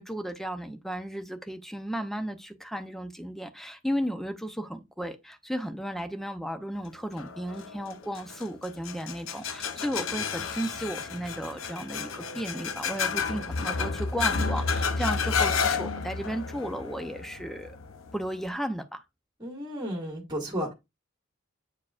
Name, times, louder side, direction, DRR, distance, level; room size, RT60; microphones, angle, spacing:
voice 1, 0.0-17.8 18.1-19.0, equal, ahead, 0.6 m, -34 dB
sound 1, 7.2-18.5, left 5 dB, 90° left, 0.7 m, -31 dB
voice 2, 19.4-20.7, equal, 20° right, 1.8 m, -33 dB
8.6 x 4.6 x 2.4 m
head